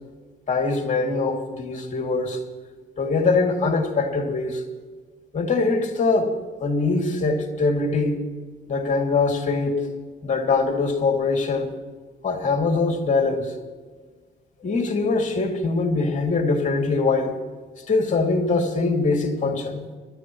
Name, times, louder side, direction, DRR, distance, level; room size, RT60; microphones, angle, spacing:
voice 1, 0.5-2.4 3.0-4.6 5.3-6.3 6.6-8.2 8.7-9.9 10.2-11.7 12.2-13.5 14.6-17.4 17.9-19.9, left 3 dB, 40° left, 2 dB, 2.8 m, -22 dB
24.0 x 13.5 x 3.2 m, 1.4 s
cardioid pair, 90°, 20 cm